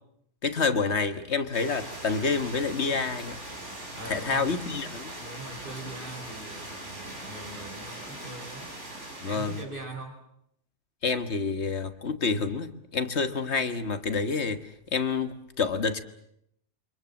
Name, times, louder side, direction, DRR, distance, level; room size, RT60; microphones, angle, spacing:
voice 1, 0.4-3.4 4.1-5.1 9.2-9.5 11.0-16.0, left 4 dB, 70° left, 10 dB, 1.7 m, -28 dB
sound 1, 1.5-9.6, right 1 dB, 85° right, 5.8 m, -41 dB
voice 2, 3.9-4.5 5.2-8.7 9.2-10.2, right 2 dB, 45° right, 4 dB, 5.1 m, -42 dB
28.5 x 25.0 x 7.2 m, 0.74 s
omnidirectional pair, 1.2 m